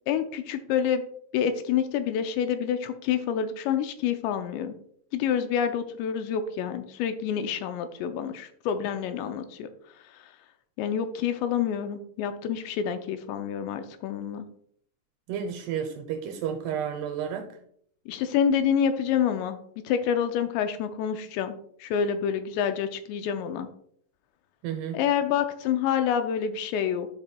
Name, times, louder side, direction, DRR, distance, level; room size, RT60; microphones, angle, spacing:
voice 1, 0.1-1.0 1.3-4.8 5.1-9.7 10.1-10.3 10.8-14.5 18.1-19.6 19.8-23.7 24.9-27.1, left 8 dB, 85° left, 2.6 m, -27 dB
voice 2, 15.3-17.5 24.6-25.0, right 8 dB, 80° right, 2.5 m, -31 dB
12.0 x 5.3 x 2.2 m
omnidirectional pair, 5.2 m